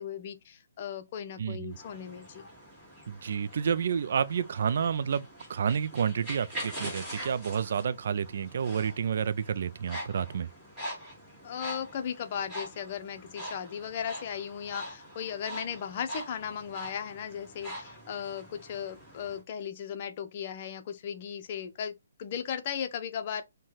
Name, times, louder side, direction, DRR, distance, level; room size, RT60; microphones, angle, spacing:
voice 1, 0.0-2.5 11.4-23.4, left 8 dB, 40° left, 0.6 m, -36 dB
voice 2, 1.4-1.8 3.1-10.5, right 7 dB, 60° right, 0.3 m, -30 dB
sound 1, 1.7-19.4, equal, 5° right, 2.1 m, -44 dB
5.4 x 2.2 x 3.0 m
hypercardioid pair, 155°, 0 cm